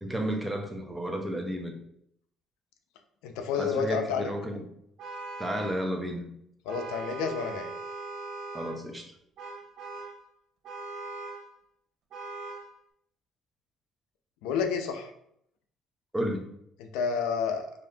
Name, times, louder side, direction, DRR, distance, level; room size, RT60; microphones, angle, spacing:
voice 1, 0.0-1.8 3.5-4.6 5.4-6.3 8.5-9.1 16.1-16.4, equal, 10° right, 3 dB, 0.7 m, -32 dB
voice 2, 3.2-4.3 6.7-7.7 14.4-15.1 16.8-17.7, left 6 dB, 85° left, 5 dB, 0.4 m, -30 dB
Vehicle horn car horn honking, 5.0-5.9 6.7-8.8 9.4-10.2 10.6-11.5 12.1-12.7, right 3 dB, 70° right, 0.6 m, -40 dB
3.3 x 2.6 x 2.7 m, 0.72 s
supercardioid pair, 80°, 0 cm